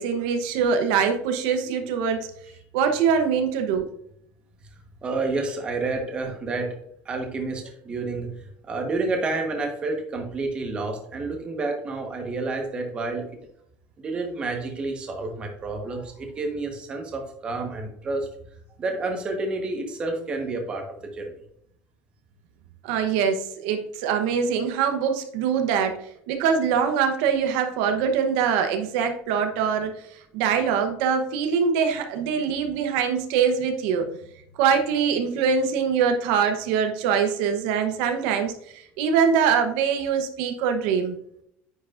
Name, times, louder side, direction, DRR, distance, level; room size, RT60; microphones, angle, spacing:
voice 1, 0.0-2.3 2.7-3.9 22.8-30.0 30.3-34.1 34.6-38.6 39.0-41.2, right 6 dB, 80° right, 6 dB, 0.9 m, -23 dB
voice 2, 5.0-6.8 7.0-8.3 8.6-13.3 14.0-18.3 18.8-20.8 21.1-21.3, right 3 dB, 20° right, 3 dB, 1.2 m, -29 dB
9.9 x 4.9 x 2.5 m, 0.70 s
cardioid pair, 180°, 5 cm